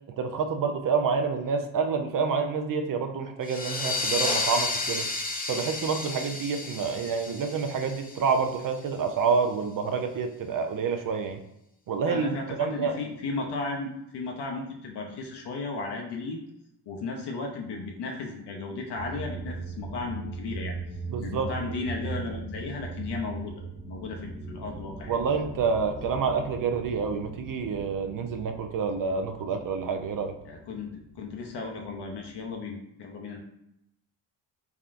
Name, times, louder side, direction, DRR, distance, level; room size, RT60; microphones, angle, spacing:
voice 1, 0.2-5.0 5.5-11.4 11.9-13.0 21.1-21.5 25.1-30.3, right 5 dB, 45° right, 6 dB, 0.5 m, -28 dB
sound 1, 3.4-8.8, left 3 dB, 20° left, 0.6 m, -32 dB
voice 2, 12.1-16.4 16.9-20.8 21.2-23.5 23.9-25.2 30.4-30.9 31.2-33.4, left 3 dB, 55° left, 1 dB, 0.7 m, -35 dB
sound 2, 18.9-32.6, right 3 dB, 85° right, 1.3 m, -40 dB
3.5 x 2.2 x 2.5 m, 0.83 s
supercardioid pair, 55°, 47 cm